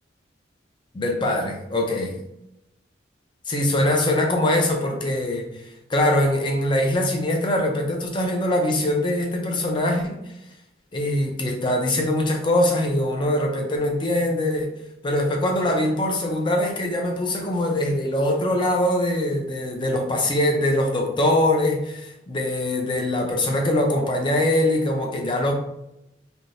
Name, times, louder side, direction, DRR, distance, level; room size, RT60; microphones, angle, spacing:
voice 1, 0.9-2.2 3.5-10.2 10.9-14.7 15.0-25.5, left 1 dB, 25° left, 2 dB, 0.5 m, -23 dB
3.5 x 2.7 x 2.6 m, 0.86 s
head